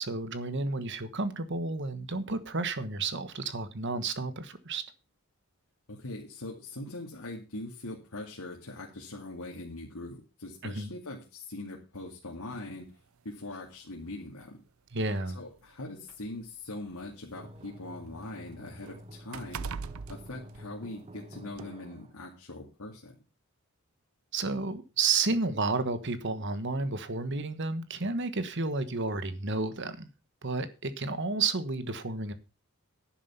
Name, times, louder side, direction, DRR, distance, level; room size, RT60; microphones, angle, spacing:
voice 1, 0.0-4.8 10.6-10.9 14.9-15.4 24.3-30.1 30.4-32.3, right 3 dB, 55° right, 1.3 m, -31 dB
voice 2, 5.9-12.9 13.2-14.6 15.3-19.7 20.1-23.2, left 2 dB, 85° left, 2.5 m, -42 dB
sound 1, 12.5-12.7 13.7-13.8 14.3-14.4 15.4-17.3 17.7-21.2 21.5-21.7, right 5 dB, 70° right, 0.5 m, -43 dB
sound 2, 17.4-22.2, equal, 25° right, 0.9 m, -49 dB
11.0 x 7.4 x 5.8 m
head